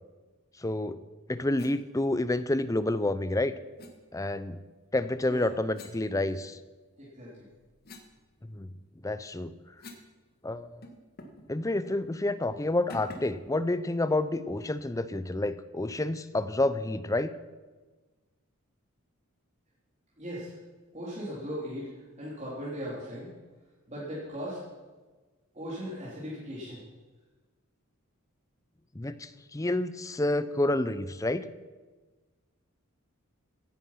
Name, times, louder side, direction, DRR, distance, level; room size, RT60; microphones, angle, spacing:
voice 1, 0.6-1.0 1.3-3.5 4.1-4.6 4.9-6.6 8.4-8.7 9.0-9.5 10.4-10.8 11.5-17.3 28.9-31.5, left 2 dB, 15° left, 14 dB, 0.5 m, -29 dB
sound 1, 1.5-1.8 3.8-4.0 5.7-6.8 7.2-10.1 10.4-10.5 10.8-11.5 11.8-12.0 12.9-13.4, left 1 dB, 45° left, 1.6 m, -49 dB
voice 2, 7.0-7.5 20.2-20.6 20.9-23.3 23.9-24.6 25.5-26.8, equal, 30° right, -7 dB, 3.2 m, -38 dB
16.0 x 10.0 x 5.8 m, 1.3 s
head